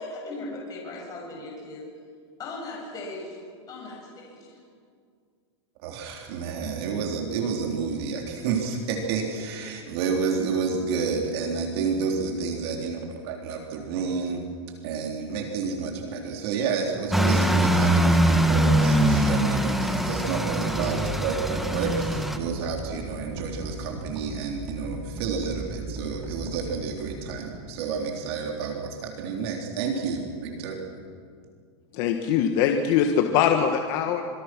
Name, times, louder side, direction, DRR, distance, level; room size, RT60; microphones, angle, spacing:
voice 1, 0.0-1.8 2.4-3.4 3.7-4.6, left 2 dB, 25° left, -2 dB, 6.8 m, -38 dB
voice 2, 5.8-14.4 14.8-30.8, right 5 dB, 60° right, 1 dB, 3.6 m, -30 dB
sound 1, 17.1-22.4, right 1 dB, ahead, 1.4 m, -22 dB
sound 2, 19.7-28.0, right 1 dB, 20° right, 3.9 m, -39 dB
voice 3, 31.9-34.2, left 8 dB, 50° left, 4 dB, 1.6 m, -22 dB
26.0 x 24.0 x 6.1 m, 2.2 s
supercardioid pair, 150°, 15 cm